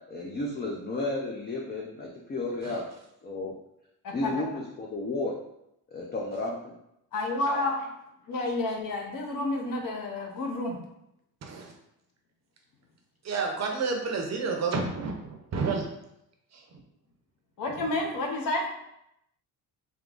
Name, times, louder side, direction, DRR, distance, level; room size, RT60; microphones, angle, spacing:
voice 1, 0.1-2.8 3.2-3.5 4.1-5.3 5.9-6.7, left 2 dB, 25° left, -2 dB, 0.4 m, -32 dB
voice 2, 7.1-7.9 8.3-10.8 17.6-18.6, left 2 dB, 55° left, 1 dB, 0.8 m, -30 dB
voice 3, 11.4-11.7 13.2-15.8, right 4 dB, 45° right, 2 dB, 0.6 m, -30 dB
3.6 x 2.9 x 3.7 m, 0.81 s
cardioid pair, 170°, 39 cm